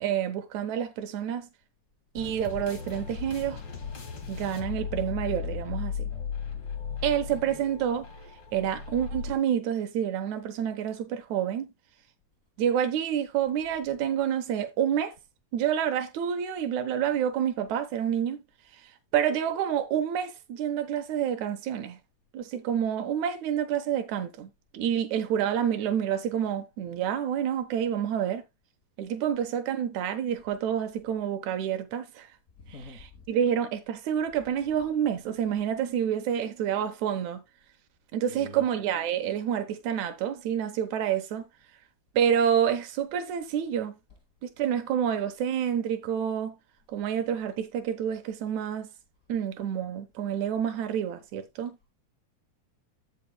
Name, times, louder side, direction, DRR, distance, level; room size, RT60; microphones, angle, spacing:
voice 1, 0.0-1.5 2.1-3.6 4.3-6.1 7.0-8.1 8.5-11.7 12.6-15.1 15.5-18.4 19.1-22.0 22.3-28.4 29.0-32.3 32.9-37.4 38.1-41.5 42.1-44.0 44.4-46.6 46.9-48.9 49.3-51.8, right 9 dB, 75° right, 2.4 m, -28 dB
sound 1, 2.2-9.4, left 6 dB, 45° left, 2.5 m, -36 dB
voice 2, 32.6-33.2 38.3-38.6, left 2 dB, 85° left, 0.7 m, -45 dB
14.5 x 5.4 x 2.2 m
omnidirectional pair, 3.4 m